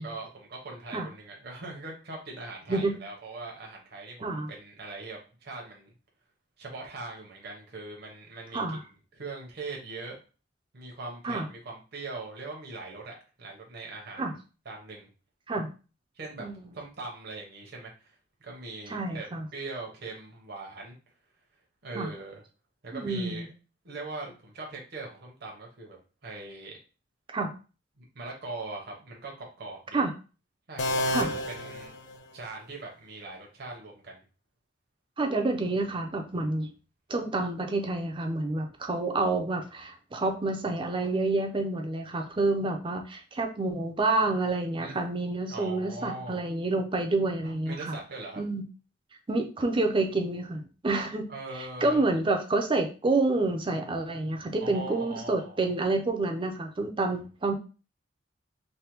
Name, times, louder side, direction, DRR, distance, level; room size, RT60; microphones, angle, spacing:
voice 1, 0.0-5.9 6.6-10.2 10.7-14.3 14.6-15.1 16.1-16.5 16.7-18.1 18.4-19.3 19.5-21.0 21.8-22.4 22.8-23.5 23.8-26.0 26.2-26.8 28.0-30.0 30.7-31.9 32.3-34.2 44.8-45.0 45.5-46.4 47.4-48.4 51.3-52.0 54.6-55.7, right 3 dB, 60° right, -1 dB, 0.8 m, -41 dB
voice 2, 18.9-19.5 21.9-22.1 22.9-23.5 27.3-27.5 29.9-30.1 31.1-31.3 35.2-36.7 37.1-47.9 48.4-48.6 49.3-51.3 51.6-57.5, right 2 dB, 25° right, 4 dB, 0.5 m, -28 dB
sound 1, 30.8-32.7, left 1 dB, 75° left, 0.5 m, -31 dB
3.3 x 2.1 x 2.9 m, 0.34 s
head